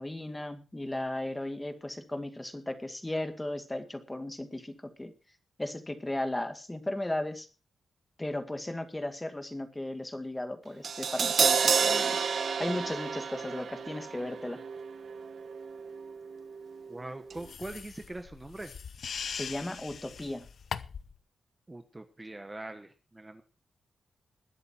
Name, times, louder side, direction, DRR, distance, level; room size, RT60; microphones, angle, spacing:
voice 1, 0.0-5.1 5.6-7.5 8.2-14.6 19.3-20.5, left 1 dB, 15° left, 8 dB, 2.1 m, -36 dB
Crash cymbal, 10.8-17.0 17.3-17.4, right 6 dB, 60° right, 1.3 m, -30 dB
voice 2, 16.9-18.7 21.7-23.4, right 2 dB, 15° right, 7 dB, 1.3 m, -42 dB
sound 1, 17.4-21.2, left 6 dB, 65° left, 0.8 m, -41 dB
21.0 x 7.9 x 4.5 m, 0.34 s
wide cardioid pair, 120°, 0 cm